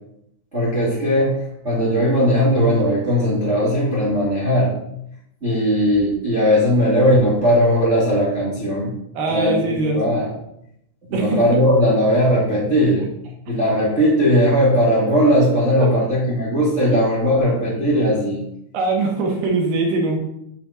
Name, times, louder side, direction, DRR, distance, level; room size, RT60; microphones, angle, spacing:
voice 1, 0.5-4.7 5.4-8.9 9.3-10.3 11.1-13.1 13.5-18.4, equal, 40° right, -6 dB, 1.0 m, -18 dB
voice 2, 9.1-10.0 11.1-11.4 18.7-20.2, right 3 dB, 65° right, 1 dB, 2.6 m, -21 dB
7.2 x 3.8 x 5.6 m, 0.77 s
omnidirectional pair, 4.6 m